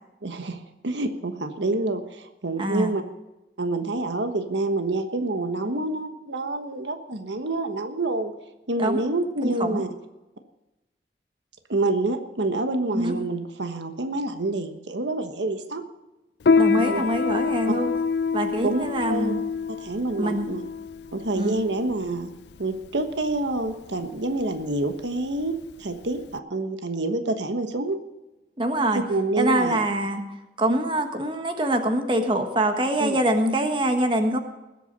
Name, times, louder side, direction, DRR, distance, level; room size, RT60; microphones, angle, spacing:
voice 1, 0.2-3.0 3.6-8.3 8.7-9.9 11.7-15.8 16.7-17.0 18.6-19.3 19.7-20.6 21.1-22.3 22.6-28.0 29.1-29.8 33.0-33.2, right 2 dB, 85° right, 7 dB, 1.3 m, -27 dB
voice 2, 2.6-3.0 5.6-5.8 8.8-9.1 9.4-9.8 12.9-13.1 16.6-17.9 18.3-19.4 20.2-20.4 21.3-21.6 28.6-29.0 29.4-30.2 30.6-34.4, right 1 dB, 30° right, 6 dB, 1.4 m, -24 dB
Piano, 16.4-26.4, left 5 dB, 75° left, 0.4 m, -26 dB
20.0 x 8.4 x 5.3 m, 1.0 s
head